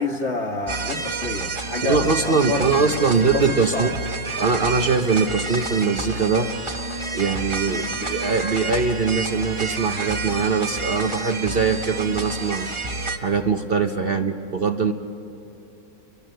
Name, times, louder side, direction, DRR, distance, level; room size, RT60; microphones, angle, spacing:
voice 1, 0.0-4.0 7.7-8.0 14.0-14.2, left 3 dB, 50° left, 4 dB, 1.8 m, -29 dB
sound 1, 0.7-13.2, right 3 dB, 20° right, 1.1 m, -29 dB
voice 2, 1.8-3.9 4.4-6.5 7.1-12.7 13.2-14.9, right 5 dB, 45° right, 6 dB, 1.0 m, -22 dB
29.5 x 24.0 x 7.9 m, 3.0 s
omnidirectional pair, 1.5 m